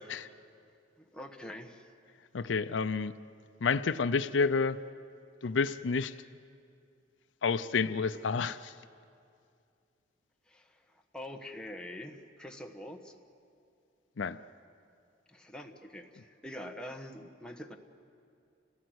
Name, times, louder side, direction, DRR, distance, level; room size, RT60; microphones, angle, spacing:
voice 1, 1.0-1.9 10.5-13.1 15.3-17.8, left 1 dB, 5° left, 2 dB, 1.3 m, -45 dB
voice 2, 2.3-3.1 3.6-4.8 5.4-6.1 7.4-8.7 14.2-14.4, left 5 dB, 80° left, 12 dB, 0.5 m, -29 dB
29.5 x 17.5 x 8.0 m, 2.4 s
head